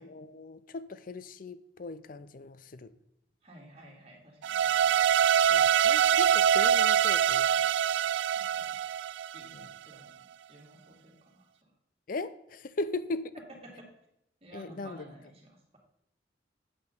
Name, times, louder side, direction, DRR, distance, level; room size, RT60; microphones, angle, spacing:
voice 1, 0.0-3.0 5.5-7.7 9.5-9.7 12.1-13.4 14.5-15.1, left 3 dB, 50° left, 14 dB, 0.5 m, -38 dB
voice 2, 3.4-5.0 8.3-8.8 9.3-11.7 13.6-13.9 14.4-15.8, right 1 dB, 35° right, -1 dB, 2.4 m, -53 dB
sound 1, 4.4-9.7, right 9 dB, 90° right, 0.3 m, -24 dB
8.7 x 8.4 x 3.9 m, 0.77 s
head